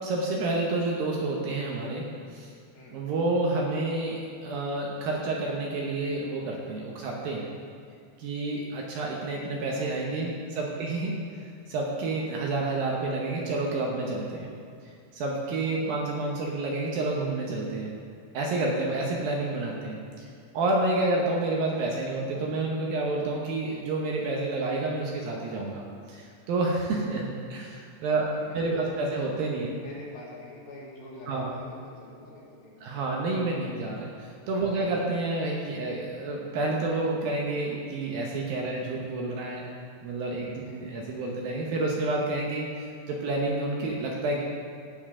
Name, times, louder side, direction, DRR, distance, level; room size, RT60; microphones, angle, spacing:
voice 1, 0.0-2.5 2.9-7.5 8.2-11.1 11.7-14.5 15.1-17.9 18.3-20.3 20.5-28.3 28.5-29.7 31.3-31.5 32.8-39.6 40.0-44.4, right 2 dB, 70° right, -1 dB, 2.4 m, -29 dB
voice 2, 9.8-10.2 29.7-33.0 34.6-34.9 38.7-39.0 40.5-40.8, left 2 dB, 65° left, -5 dB, 3.3 m, -46 dB
16.0 x 7.1 x 3.7 m, 2.3 s
omnidirectional pair, 4.9 m